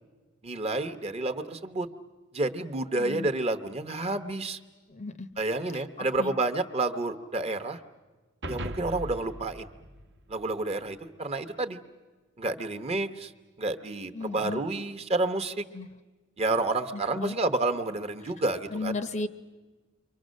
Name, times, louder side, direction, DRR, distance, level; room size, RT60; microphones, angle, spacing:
voice 1, 0.4-1.9 2.3-4.6 5.4-7.8 8.5-9.7 10.3-11.8 12.4-13.3 13.6-15.6 16.4-18.9, right 2 dB, 30° right, 7 dB, 0.9 m, -29 dB
voice 2, 3.0-3.3 4.9-5.3 5.7-5.8 6.2-6.3 14.1-14.6 15.7-15.9 16.9-17.4 18.7-19.3, left 3 dB, 35° left, 11 dB, 0.7 m, -34 dB
sound 1, 8.4-10.9, right 1 dB, 60° right, 1.0 m, -39 dB
29.5 x 24.0 x 6.4 m, 1.3 s
head